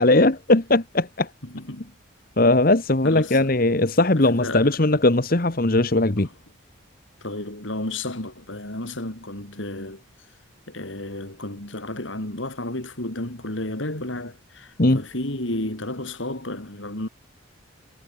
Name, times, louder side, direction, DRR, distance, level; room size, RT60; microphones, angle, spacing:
voice 1, 0.0-1.3 2.4-6.3 14.8-15.0, left 2 dB, 45° left, 1.3 m, -19 dB
voice 2, 1.4-2.0 3.0-3.5 4.2-4.7 7.2-10.0 10.7-17.1, left 1 dB, 70° left, 3.6 m, -32 dB
head